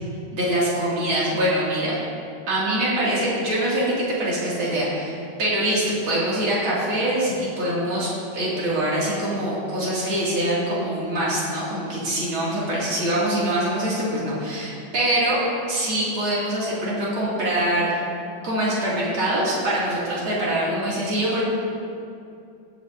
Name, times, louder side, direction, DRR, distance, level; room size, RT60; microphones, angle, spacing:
voice 1, 0.3-2.0 2.5-15.4 15.7-18.0 18.4-21.4, right 1 dB, 80° right, -8 dB, 3.3 m, -24 dB
18.0 x 10.0 x 2.7 m, 2.5 s
omnidirectional pair, 2.2 m